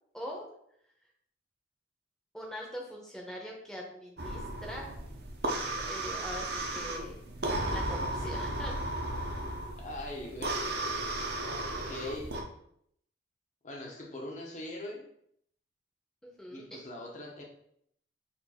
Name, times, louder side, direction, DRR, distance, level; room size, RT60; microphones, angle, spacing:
voice 1, 0.1-0.5 2.3-5.0 5.6-7.2 7.7-8.8 16.2-16.6, equal, 5° left, -2 dB, 0.8 m, -42 dB
sound 1, 4.2-12.4, right 1 dB, 55° right, 0.7 m, -35 dB
voice 2, 9.8-11.0 11.7-12.4 13.6-15.1 16.5-17.4, left 1 dB, 40° left, -1 dB, 0.9 m, -41 dB
4.4 x 2.6 x 4.2 m, 0.70 s
head